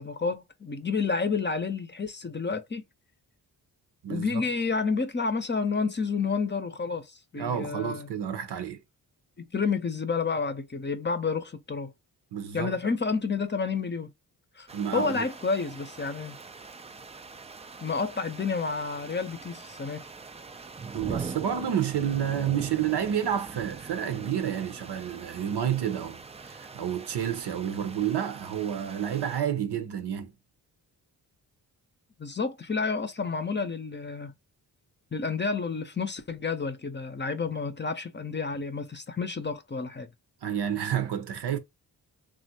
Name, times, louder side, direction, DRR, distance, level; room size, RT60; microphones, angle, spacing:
voice 1, 0.0-2.8 4.1-8.1 9.4-11.9 12.5-14.1 14.6-14.7 14.9-16.3 17.8-20.0 32.2-34.3 35.1-40.1, left 4 dB, 25° left, 0.6 m, -30 dB
voice 2, 7.4-8.8 12.3-12.8 14.7-15.2 20.9-30.3 40.4-41.6, right 9 dB, 75° right, 0.8 m, -30 dB
sound 1, 14.7-29.4, right 4 dB, 15° right, 0.3 m, -43 dB
3.3 x 2.5 x 2.7 m
cardioid pair, 65°, 40 cm